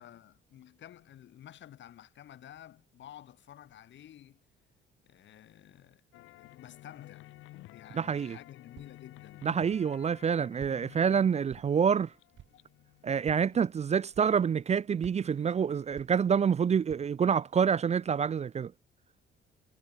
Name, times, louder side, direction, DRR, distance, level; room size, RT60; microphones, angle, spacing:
voice 1, 0.0-4.4 5.0-6.0 6.4-7.3 7.7-9.5, left 11 dB, 70° left, 1.9 m, -52 dB
sound 1, 6.1-15.1, left 17 dB, 90° left, 0.9 m, -54 dB
voice 2, 7.9-8.4 9.4-12.1 13.0-18.7, right 7 dB, 35° right, 0.4 m, -27 dB
Walk footsteps, 8.7-9.2 9.7-10.2 10.6-11.1 11.5-12.0 12.3-12.7 13.2-13.6 14.1-14.6 15.0-16.5 16.9-17.3, right 10 dB, 70° right, 6.7 m, -53 dB
cardioid pair, 90°, 20 cm